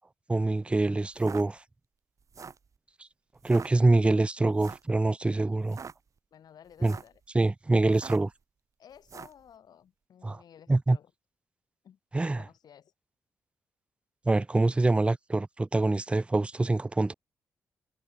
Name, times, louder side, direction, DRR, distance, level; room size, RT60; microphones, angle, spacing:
voice 1, 0.3-1.6 3.4-5.8 6.8-7.0 7.3-8.3 10.2-10.4 10.7-11.0 12.1-12.4 14.3-17.1, right 2 dB, 15° right, 0.4 m, -25 dB
sound 1, 1.1-1.4 2.2-2.7 3.4-3.7 4.6-4.9 5.6-5.9 6.7-7.2 7.9-8.3 9.0-9.4, right 5 dB, 45° right, 0.9 m, -43 dB
voice 2, 6.3-7.2 8.8-11.1 11.8-12.0 12.2-12.9, left 9 dB, 70° left, 2.3 m, -54 dB
hypercardioid pair, 45°, 7 cm